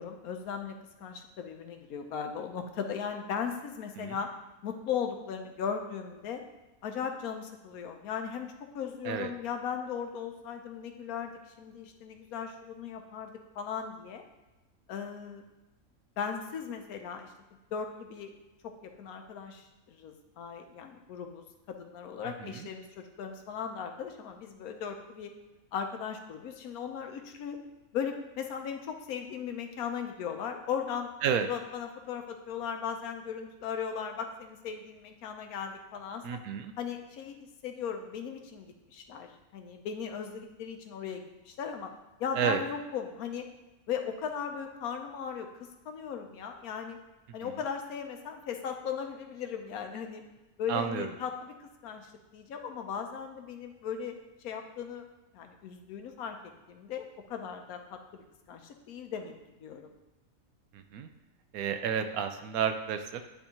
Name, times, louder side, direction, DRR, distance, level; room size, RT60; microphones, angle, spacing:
voice 1, 0.0-4.3 4.6-6.4 6.8-14.2 14.9-15.4 16.2-17.3 17.7-18.3 18.8-25.3 25.7-27.6 27.9-31.1 31.4-36.4 36.8-41.9 42.2-43.4 43.9-45.5 45.8-47.0 47.3-50.2 50.6-54.1 54.4-55.1 55.3-56.4 56.7-59.3 59.6-59.9, left 7 dB, 90° left, 5 dB, 1.1 m, -37 dB
voice 2, 36.2-36.7 42.4-42.6 47.4-47.5 50.7-51.1 60.7-61.1 61.5-63.2, right 8 dB, 85° right, 7 dB, 1.1 m, -31 dB
9.9 x 3.4 x 2.8 m, 1.1 s
omnidirectional pair, 1.5 m